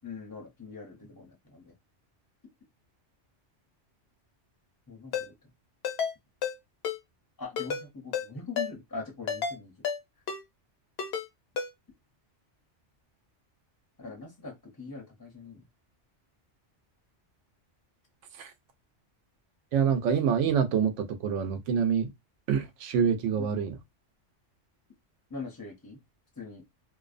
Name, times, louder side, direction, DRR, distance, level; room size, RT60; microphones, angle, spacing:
voice 1, 0.0-1.6 4.9-5.3 7.4-9.7 14.0-15.6 23.4-23.5 25.3-26.0 26.4-26.6, left 4 dB, 25° left, 0.5 m, -42 dB
Ringtone, 5.1-5.3 5.8-6.1 6.4-6.6 6.8-7.0 7.6-7.8 8.1-8.3 8.6-8.7 9.3-9.6 9.8-10.0 10.3-10.4 11.0-11.3 11.6-11.7, left 7 dB, 65° left, 0.8 m, -30 dB
voice 2, 19.7-22.1 22.5-23.8, right 7 dB, 85° right, 0.9 m, -26 dB
2.6 x 2.0 x 2.4 m
omnidirectional pair, 1.2 m